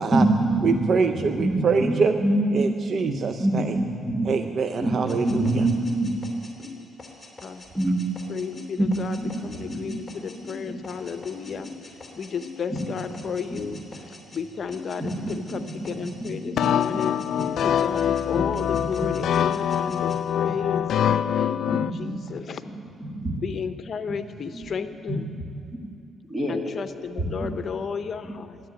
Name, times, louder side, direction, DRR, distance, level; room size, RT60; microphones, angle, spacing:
voice 1, 0.0-0.8 1.1-2.7 3.0-4.3 4.8-6.2 7.8-8.0 8.8-10.0 10.4-10.8 11.5-11.6 12.7-12.9 13.5-13.6 13.9-14.0 15.0-17.8 18.3-18.9 19.8-19.9 20.5-21.2 21.6-22.4 23.0-23.3 24.1-24.2 24.5-24.7 25.1-25.2 25.7-25.9 26.3-26.6 27.2-27.3, right 1 dB, 20° right, 0 dB, 2.3 m, -27 dB
voice 2, 0.6-2.1 2.5-3.6 4.2-5.5, right 5 dB, 50° right, 8 dB, 0.5 m, -24 dB
sound 1, 5.1-14.4 14.7-16.3 16.6-18.3 18.5-20.2, left 3 dB, 20° left, 3.1 m, -43 dB
voice 3, 8.3-9.2 9.4-17.2 17.6-22.6 23.4-25.3 26.5-28.6, left 6 dB, 50° left, 10 dB, 0.8 m, -33 dB
beautiful piano chord loop with tremolo, 16.6-21.9, left 9 dB, 70° left, 0.3 m, -24 dB
12.0 x 10.5 x 9.0 m, 2.6 s
cardioid pair, 90°, 0 cm